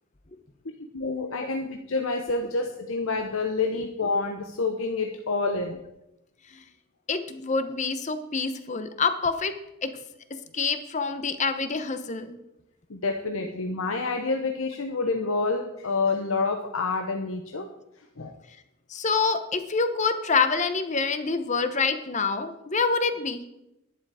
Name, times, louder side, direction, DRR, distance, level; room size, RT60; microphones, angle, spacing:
voice 1, 0.9-5.8 12.9-17.7 18.2-18.4, left 3 dB, 80° left, 4 dB, 1.0 m, -28 dB
voice 2, 7.1-9.5 9.8-9.9 10.5-12.4 18.9-23.4, left 4 dB, 35° left, 10 dB, 0.9 m, -26 dB
11.0 x 10.5 x 4.9 m, 0.87 s
head